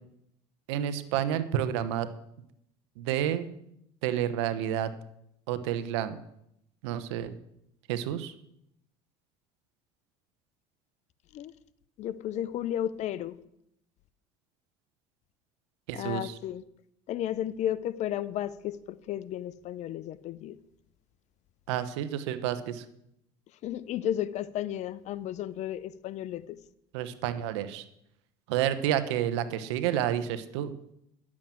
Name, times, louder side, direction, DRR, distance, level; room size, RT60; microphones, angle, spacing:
voice 1, 0.7-2.1 3.0-3.5 4.0-4.9 5.5-6.2 6.8-7.4 7.9-8.3 15.9-16.3 21.7-22.8 26.9-27.8 28.5-30.7, right 11 dB, 85° right, 1.0 m, -30 dB
voice 2, 12.0-13.4 15.9-16.6 17.1-20.6 23.6-26.6, left 11 dB, 55° left, 0.7 m, -33 dB
10.5 x 7.4 x 7.5 m
supercardioid pair, 90°, 14 cm